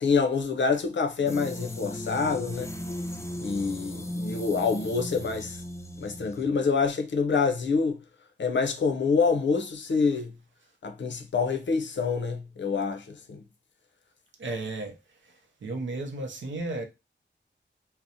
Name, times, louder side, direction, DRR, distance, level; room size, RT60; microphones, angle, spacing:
voice 1, 0.0-2.7 3.4-5.6 6.0-8.0 8.4-10.3 10.8-13.4, left 5 dB, 70° left, 0.5 m, -26 dB
sound 1, 1.3-6.5, left 1 dB, 15° left, 0.4 m, -37 dB
voice 2, 14.4-15.0 15.2-15.3 15.6-16.9, right 2 dB, 75° right, 0.6 m, -33 dB
2.5 x 2.0 x 2.7 m
wide cardioid pair, 90°, 20 cm